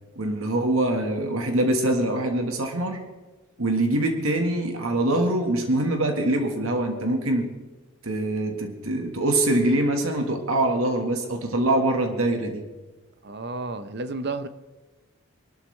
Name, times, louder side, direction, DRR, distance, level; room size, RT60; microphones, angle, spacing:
voice 1, 0.1-3.0 3.6-7.5 8.0-12.6, right 1 dB, 75° right, 1.7 m, -24 dB
voice 2, 13.2-14.5, right 3 dB, 50° right, 0.8 m, -31 dB
23.0 x 12.5 x 3.3 m
head